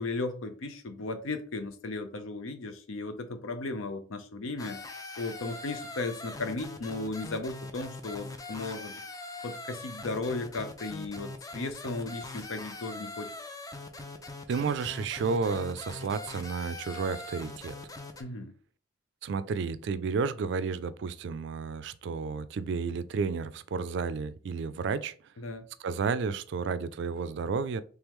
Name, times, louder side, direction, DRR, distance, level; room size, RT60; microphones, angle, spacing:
voice 1, 0.0-4.8 5.2-8.9 9.4-13.3 18.2-18.5 25.4-25.7, left 3 dB, 85° left, 0.6 m, -35 dB
sound 1, 4.6-18.2, left 2 dB, 20° left, 0.3 m, -42 dB
voice 2, 14.5-17.7 19.2-25.1 25.8-27.8, right 5 dB, 60° right, 0.3 m, -31 dB
3.3 x 3.0 x 3.5 m
head